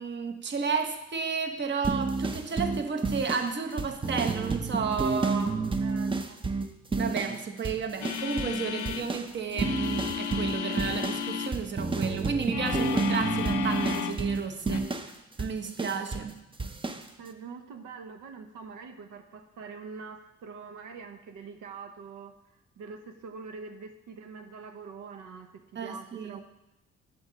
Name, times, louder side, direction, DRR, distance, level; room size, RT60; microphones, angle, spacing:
voice 1, 0.0-5.7 7.0-14.9 15.4-16.4 25.7-26.4, right 5 dB, 35° right, 5 dB, 0.9 m, -32 dB
sound 1, 1.8-7.4 7.6-8.6 8.9-16.3 16.6-17.1, right 3 dB, 15° right, 0.5 m, -30 dB
voice 2, 5.8-6.5 17.2-22.3 22.8-26.4, right 5 dB, 90° right, 6 dB, 0.8 m, -44 dB
sound 2, 8.0-9.1 9.5-11.5 12.5-14.2 14.6-14.8, left 7 dB, 75° left, 0.6 m, -33 dB
7.9 x 3.9 x 6.7 m, 0.91 s
cardioid pair, 90°, 30 cm